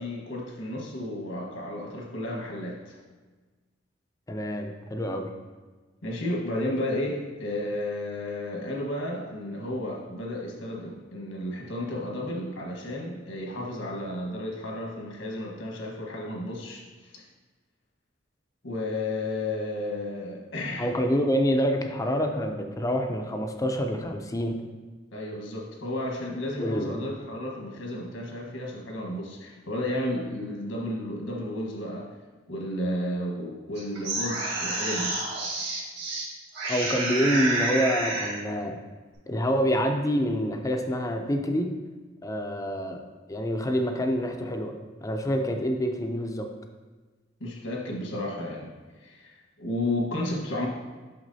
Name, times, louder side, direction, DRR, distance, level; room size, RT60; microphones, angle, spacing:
voice 1, 0.0-3.0 6.0-16.8 17.1-17.2 18.6-20.9 25.1-32.1 32.5-35.2 47.4-48.7 49.0-50.7, left 1 dB, 85° left, -1 dB, 1.3 m, -32 dB
voice 2, 4.3-5.3 20.8-24.6 26.6-27.0 36.7-38.8 39.3-41.7 42.2-43.0 43.3-46.5, equal, 15° left, 4 dB, 0.4 m, -27 dB
sound 1, 33.8-36.2 36.5-38.4, right 2 dB, 60° right, 1.7 m, -29 dB
6.1 x 5.7 x 2.7 m, 1.3 s
head